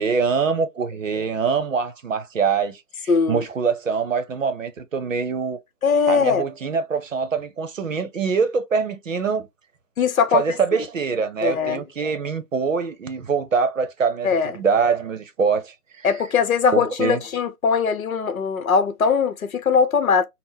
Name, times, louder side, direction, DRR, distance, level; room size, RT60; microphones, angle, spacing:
voice 1, 0.0-5.6 6.1-9.5 10.3-16.1 16.7-17.2, right 5 dB, 55° right, 0.8 m, -24 dB
voice 2, 3.1-3.4 5.8-6.4 10.0-10.4 11.4-11.8 14.2-14.6 16.0-20.3, left 6 dB, 65° left, 0.8 m, -20 dB
3.6 x 2.1 x 2.7 m
figure-of-eight pair, 155°, 46 cm